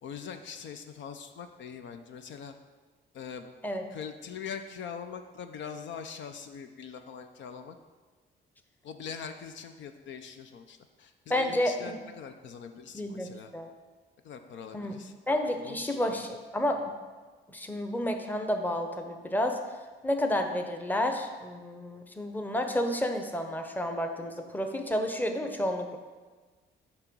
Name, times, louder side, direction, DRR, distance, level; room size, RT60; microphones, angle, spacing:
voice 1, 0.0-2.5 3.1-3.5 3.9-7.8 8.8-13.5 14.2-15.1 15.6-16.2, left 7 dB, 70° left, 7 dB, 0.6 m, -42 dB
voice 2, 11.3-12.0 12.9-13.7 14.7-14.9 15.3-16.9 17.5-19.6 20.0-26.0, left 1 dB, 10° left, 5 dB, 0.8 m, -30 dB
8.6 x 3.0 x 6.1 m, 1.4 s
cardioid pair, 90°, 20 cm